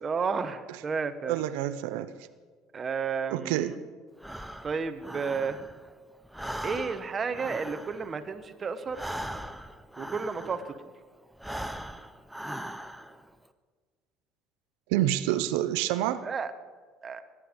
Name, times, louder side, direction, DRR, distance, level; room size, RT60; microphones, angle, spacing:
voice 1, 0.0-1.4 2.7-3.7 4.6-5.6 6.6-9.0 10.0-10.6 16.2-16.5 17.0-17.2, right 5 dB, 30° right, 9 dB, 0.9 m, -32 dB
voice 2, 1.3-2.1 3.3-3.7 14.9-16.2, right 13 dB, 90° right, 11 dB, 0.6 m, -27 dB
Breathing, 4.2-5.9 6.2-10.8 11.3-13.2, right 1 dB, ahead, 0.6 m, -39 dB
18.0 x 10.0 x 5.1 m, 1.5 s
cardioid pair, 115°, 0 cm